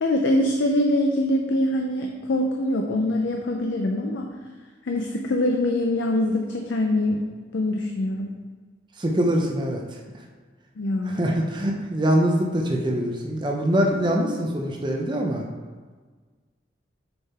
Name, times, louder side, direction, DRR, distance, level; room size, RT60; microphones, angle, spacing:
voice 1, 0.0-4.3 4.8-7.2 7.5-8.3 10.8-11.2, left 1 dB, 80° left, 2 dB, 0.5 m, -23 dB
voice 2, 9.0-10.2 11.0-15.4, equal, 25° right, 0 dB, 0.5 m, -24 dB
6.8 x 3.8 x 4.2 m, 1.4 s
head